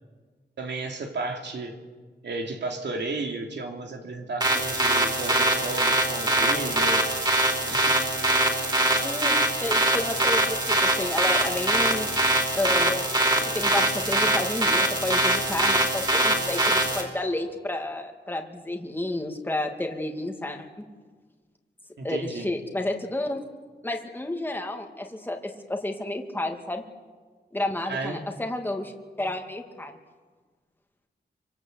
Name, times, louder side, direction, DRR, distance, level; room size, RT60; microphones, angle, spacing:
voice 1, 0.6-1.7 2.2-7.1 7.6-7.9 22.0-22.5 27.9-28.2, right 3 dB, 80° right, 2 dB, 3.0 m, -33 dB
sound 1, 4.4-17.0, right 1 dB, 25° right, 4.8 m, -23 dB
voice 2, 9.0-9.3 9.6-12.1 12.5-13.1 13.5-20.7 22.0-23.5 23.8-26.8 27.5-28.9 29.2-29.9, left 1 dB, 10° left, 3 dB, 2.3 m, -31 dB
26.5 x 25.5 x 8.2 m, 1.5 s
wide cardioid pair, 145°, 18 cm